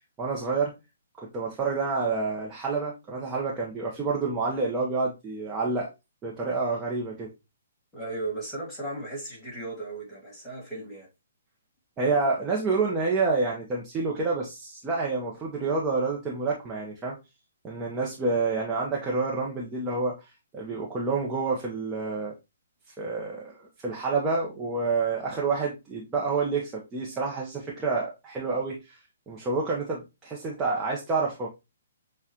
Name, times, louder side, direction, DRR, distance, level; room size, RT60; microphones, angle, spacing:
voice 1, 0.2-0.7 1.2-5.9 6.2-7.3 12.0-17.2 17.6-20.2 20.5-22.3 23.0-29.0 29.3-31.5, right 4 dB, 15° right, 0.8 m, -28 dB
voice 2, 7.9-11.1, right 2 dB, 5° left, 2.0 m, -36 dB
7.0 x 2.4 x 2.8 m
hypercardioid pair, 155°, 0 cm